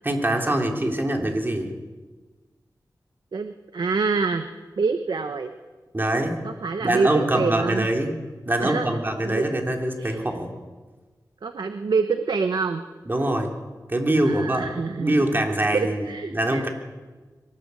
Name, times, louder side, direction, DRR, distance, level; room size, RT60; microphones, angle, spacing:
voice 1, 0.0-1.7 5.9-6.4 6.8-8.1 8.5-10.5 13.1-13.5 13.9-14.7 15.0-16.0 16.3-16.7, right 1 dB, 30° right, 2 dB, 3.5 m, -23 dB
voice 2, 3.3-4.5 4.8-5.5 6.4-7.9 8.6-9.5 10.0-10.2 11.4-12.8 14.2-15.4 15.7-16.7, right 4 dB, 80° right, 8 dB, 1.1 m, -26 dB
23.0 x 19.0 x 8.4 m, 1.3 s
wide cardioid pair, 95°, 7 cm